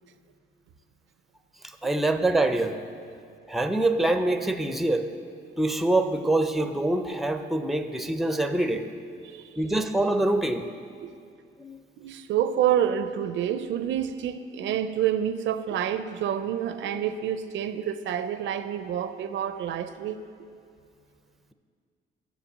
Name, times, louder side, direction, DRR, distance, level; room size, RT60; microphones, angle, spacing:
voice 1, 1.8-2.8 3.5-5.1 5.6-8.9 9.6-10.7 11.6-11.8, right 2 dB, ahead, 8 dB, 0.5 m, -25 dB
voice 2, 9.2-9.6 11.0-11.1 12.0-20.2, right 10 dB, 70° right, 12 dB, 0.5 m, -28 dB
7.1 x 7.0 x 7.3 m, 2.3 s
cardioid pair, 90°, 20 cm